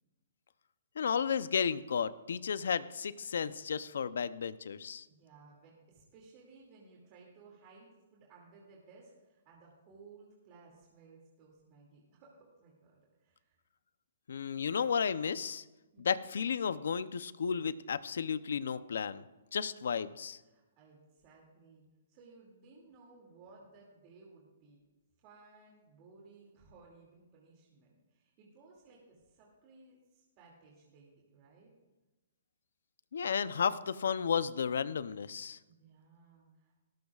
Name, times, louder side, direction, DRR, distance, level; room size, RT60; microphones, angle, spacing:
voice 1, 1.0-5.0 14.3-15.6 16.0-19.2 19.5-20.4 33.1-35.6, left 7 dB, 75° left, 15 dB, 0.6 m, -33 dB
voice 2, 5.1-13.6 15.9-16.2 20.4-21.8 22.1-24.8 25.2-31.7 35.6-36.8, right 4 dB, 25° right, -3 dB, 2.5 m, -59 dB
17.0 x 14.5 x 2.4 m, 1.1 s
hypercardioid pair, 165°, 0 cm